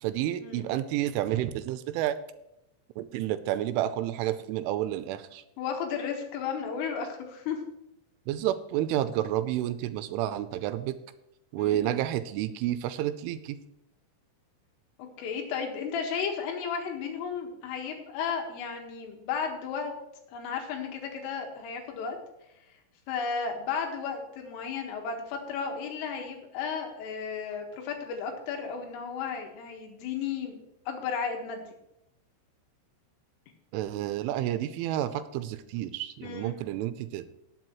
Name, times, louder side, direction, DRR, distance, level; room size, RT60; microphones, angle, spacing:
voice 1, 0.0-2.2 3.0-5.4 8.3-11.0 11.5-13.6 33.7-37.3, right 13 dB, 90° right, 12 dB, 3.1 m, -30 dB
voice 2, 5.6-7.6 11.6-11.8 15.0-19.9 20.3-22.2 23.1-31.6 36.2-36.6, left 6 dB, 90° left, 3 dB, 4.2 m, -34 dB
19.0 x 8.1 x 3.1 m, 0.85 s
omnidirectional pair, 5.6 m